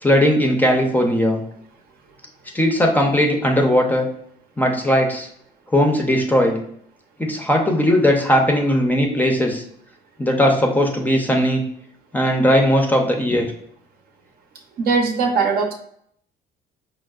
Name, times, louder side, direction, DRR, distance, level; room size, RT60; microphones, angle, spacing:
voice 1, 0.0-1.4 2.5-4.1 4.6-5.3 5.7-6.6 7.2-9.6 10.2-11.6 12.1-13.5, equal, 10° left, 2 dB, 0.5 m, -18 dB
voice 2, 14.8-15.7, right 4 dB, 60° right, 3 dB, 0.7 m, -19 dB
5.3 x 2.0 x 2.3 m, 0.68 s
cardioid pair, 110°, 17 cm